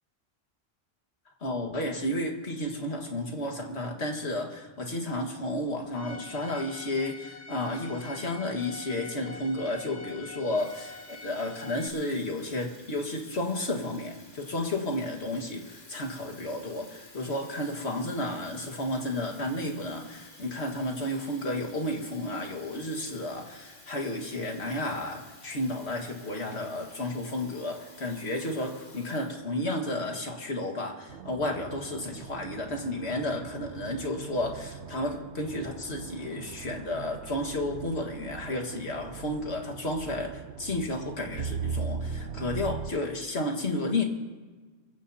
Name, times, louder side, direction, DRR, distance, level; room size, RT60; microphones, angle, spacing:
voice 1, 1.4-44.0, left 1 dB, 75° left, 2 dB, 2.1 m, -32 dB
Bowed string instrument, 5.9-11.9, left 3 dB, 15° left, 1.3 m, -45 dB
Water tap faucet / Fill (with liquid), 10.1-29.8, left 2 dB, 45° left, 2.3 m, -53 dB
sound 1, 31.1-42.9, right 6 dB, 80° right, 1.0 m, -39 dB
24.5 x 15.0 x 2.8 m, 1.3 s
omnidirectional pair, 1.1 m